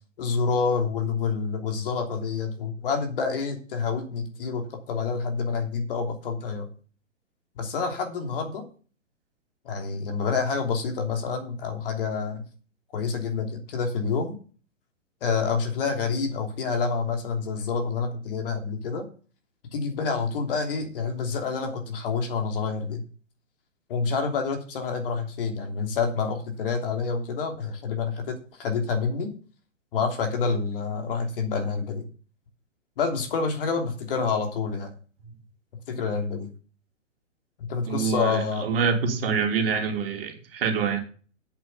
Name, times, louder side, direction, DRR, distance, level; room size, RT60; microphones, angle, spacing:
voice 1, 0.2-6.7 7.5-8.7 9.6-12.4 12.9-14.3 15.2-19.0 19.7-23.0 23.9-29.3 29.9-32.1 33.0-34.9 35.9-36.5 37.6-38.7, left 5 dB, 45° left, 3 dB, 3.1 m, -28 dB
voice 2, 37.9-41.0, right 5 dB, 45° right, 4 dB, 3.0 m, -26 dB
8.3 x 7.8 x 7.0 m, 0.40 s
figure-of-eight pair, 120°, 38 cm